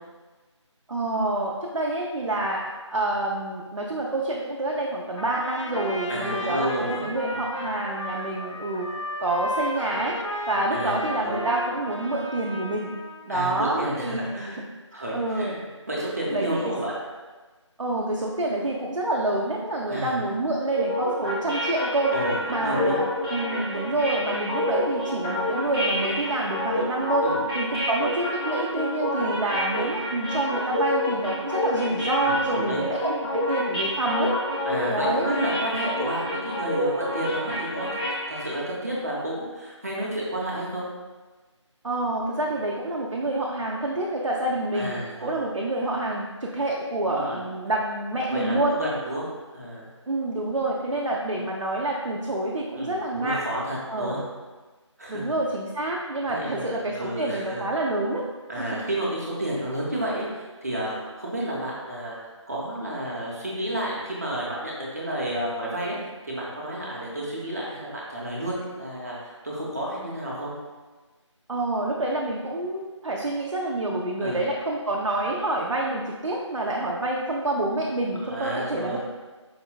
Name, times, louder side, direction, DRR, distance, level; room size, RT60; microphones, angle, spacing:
voice 1, 0.9-2.6 2.9-8.9 9.2-10.2 10.5-12.9 13.3-14.2 14.9-15.5 16.3-16.7 17.8-22.1 22.5-27.3 27.5-34.3 34.9-35.3 41.8-44.9 45.2-48.8 50.1-53.4 53.9-54.2 55.1-58.8 71.5-79.0, right 2 dB, 75° right, -3 dB, 0.5 m, -27 dB
Trumpet, 5.2-13.2, left 2 dB, 80° left, 0.4 m, -34 dB
voice 2, 6.1-7.1 7.3-7.4 10.7-11.5 13.3-14.6 14.9-15.6 15.9-17.0 19.9-20.2 22.1-23.0 27.2-27.4 32.2-32.8 34.6-38.0 38.3-40.8 44.7-45.4 47.1-47.4 48.3-49.9 52.7-54.2 55.0-55.3 56.2-57.6 58.5-66.0 66.2-70.5 74.2-74.4 78.2-79.0, right 1 dB, 30° right, -5 dB, 0.6 m, -31 dB
sound 1, 20.7-38.6, left 1 dB, 15° left, 0.6 m, -28 dB
4.8 x 2.1 x 2.3 m, 1.3 s
figure-of-eight pair, 165°, 16 cm